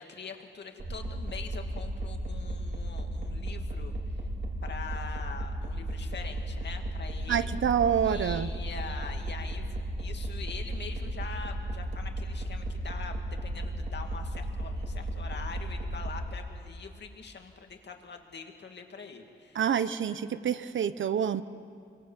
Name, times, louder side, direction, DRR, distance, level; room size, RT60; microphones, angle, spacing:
voice 1, 0.0-4.2 4.6-7.5 8.0-19.9, left 5 dB, 60° left, 4 dB, 2.4 m, -44 dB
sound 1, 0.8-16.3, right 1 dB, 55° right, 3.6 m, -35 dB
voice 2, 7.3-8.5 19.5-21.4, right 8 dB, 75° right, 13 dB, 0.9 m, -27 dB
28.5 x 23.5 x 7.4 m, 2.5 s
wide cardioid pair, 140°, 20 cm